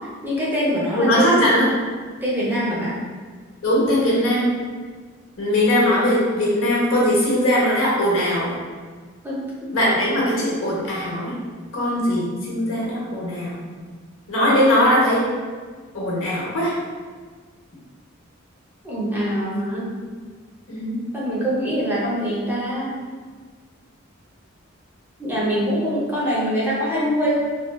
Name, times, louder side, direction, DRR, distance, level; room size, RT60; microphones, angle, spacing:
voice 1, 0.2-1.5 2.2-3.0 9.2-9.8 12.3-12.6 18.8-19.9 21.1-23.0 25.2-27.4, equal, 10° right, -7 dB, 0.6 m, -24 dB
voice 2, 0.9-1.6 3.6-4.6 5.4-8.6 9.7-11.3 11.7-13.6 14.3-15.3 15.9-16.8 20.7-21.0, equal, 75° left, -5 dB, 0.8 m, -20 dB
3.3 x 2.2 x 2.2 m, 1.5 s
head